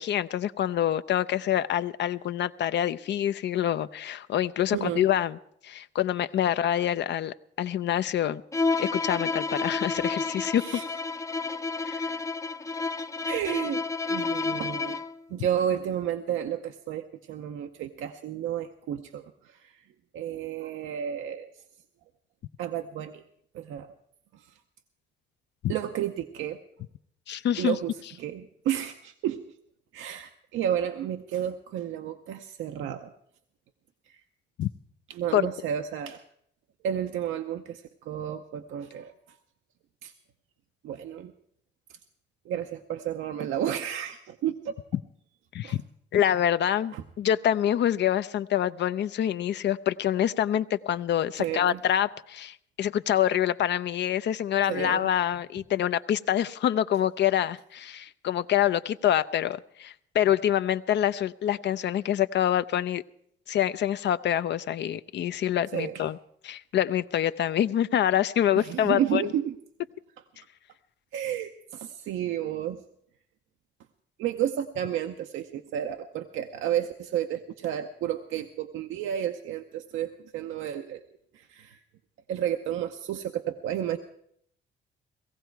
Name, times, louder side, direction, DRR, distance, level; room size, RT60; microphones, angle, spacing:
voice 1, 0.0-5.4 5.6-8.4 8.8-10.8 11.8-12.1 25.6-25.7 27.3-27.8 34.6-34.7 35.3-35.4 45.5-45.8 46.1-63.0 63.5-66.2 66.4-69.2, left 11 dB, 65° left, 13 dB, 0.5 m, -26 dB
voice 2, 4.7-5.1 10.6-10.8 13.3-13.8 14.1-15.0 15.3-19.8 20.1-21.6 22.6-23.2 23.5-23.9 24.3-24.5 25.7-26.6 27.6-29.4 29.9-33.1 34.1-34.2 35.1-36.2 36.8-39.4 40.0-40.1 40.8-41.3 42.5-44.8 45.6-45.8 46.9-47.0 51.4-51.8 54.7-55.1 65.7-66.0 68.6-69.6 71.1-72.8 74.2-81.0 81.3-81.8 82.3-84.0, right 10 dB, 85° right, 6 dB, 0.7 m, -32 dB
Bowed string instrument, 8.5-15.2, left 3 dB, 15° left, 0.5 m, -30 dB
17.5 x 15.0 x 4.6 m, 0.69 s
cardioid pair, 90°, 20 cm